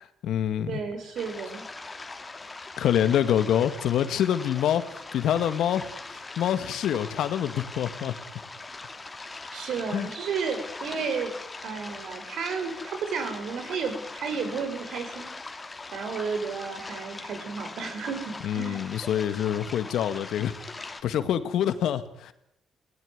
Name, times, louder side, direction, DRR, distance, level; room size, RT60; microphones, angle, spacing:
voice 1, 0.0-0.8 2.8-8.1 9.9-10.1 18.4-20.6 20.8-22.3, left 10 dB, 75° left, 12 dB, 2.0 m, -26 dB
voice 2, 0.7-1.6 9.5-11.3 11.6-15.3 15.9-18.8, right 5 dB, 70° right, 7 dB, 5.9 m, -32 dB
sound 1, 1.2-21.0, left 3 dB, 20° left, 2.8 m, -41 dB
21.5 x 18.5 x 9.6 m, 0.77 s
cardioid pair, 90°, 0 cm